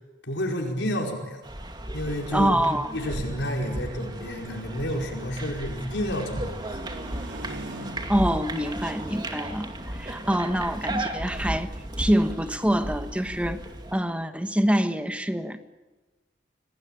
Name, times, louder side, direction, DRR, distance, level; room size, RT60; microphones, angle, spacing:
voice 1, 0.3-1.4 1.9-2.6 2.9-6.8, equal, 70° left, 1 dB, 4.9 m, -30 dB
sound 1, 1.4-14.0, right 1 dB, 25° right, 2.4 m, -35 dB
voice 2, 2.3-2.9 8.1-11.7 12.0-13.6 13.9-15.6, equal, 5° right, 8 dB, 1.3 m, -25 dB
sound 2, 5.3-8.4, right 1 dB, 75° right, 3.9 m, -44 dB
27.5 x 19.5 x 9.0 m, 1.2 s
head